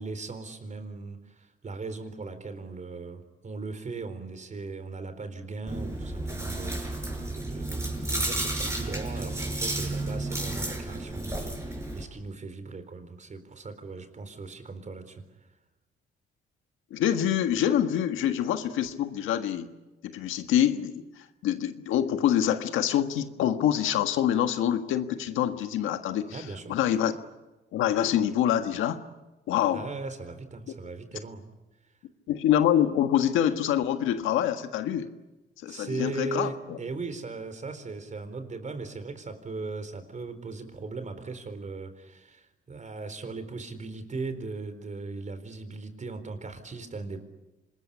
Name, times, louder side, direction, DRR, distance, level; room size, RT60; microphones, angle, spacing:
voice 1, 0.0-15.2 26.3-26.8 29.7-31.5 35.7-47.2, right 3 dB, 40° right, 9 dB, 4.1 m, -38 dB
Chewing mastication, 5.7-12.0, right 2 dB, 15° right, 6.3 m, -32 dB
voice 2, 16.9-19.7 20.0-21.0 21.4-26.4 26.7-27.1 27.7-29.0 29.5-29.9 32.3-35.1 35.6-36.8, left 10 dB, 90° left, 8 dB, 1.6 m, -25 dB
26.0 x 21.0 x 10.0 m, 1.1 s
cardioid pair, 90°, 20 cm